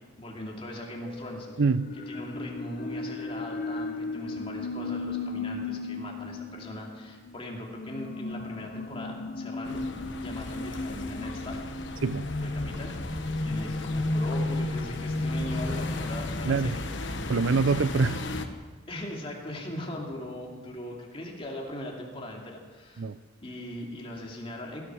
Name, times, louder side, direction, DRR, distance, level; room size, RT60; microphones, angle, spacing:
voice 1, 0.2-1.5 2.1-11.6 12.4-16.9 18.9-23.1 23.4-24.8, left 1 dB, 25° left, 2.5 m, -39 dB
sound 1, 1.1-17.3, left 2 dB, 45° left, 0.7 m, -34 dB
voice 2, 1.6-1.9 12.0-12.3 16.4-16.8 17.3-18.2 23.0-23.2, right 4 dB, 75° right, 0.5 m, -25 dB
sound 2, 9.6-18.5, left 2 dB, 65° left, 1.1 m, -37 dB
18.0 x 11.0 x 6.2 m
head